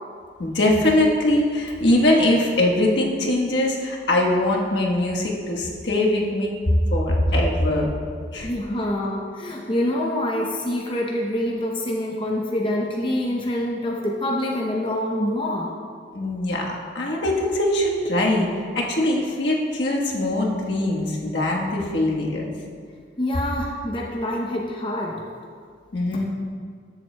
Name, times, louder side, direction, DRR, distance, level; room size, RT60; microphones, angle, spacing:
voice 1, 0.4-6.5 6.9-7.9 8.3-8.5 16.1-22.5 25.9-26.2, left 1 dB, 75° left, -2 dB, 1.3 m, -22 dB
voice 2, 8.4-15.7 23.2-25.2 26.1-26.2, left 1 dB, 30° left, -2 dB, 0.7 m, -26 dB
13.5 x 7.5 x 2.2 m, 2.1 s
head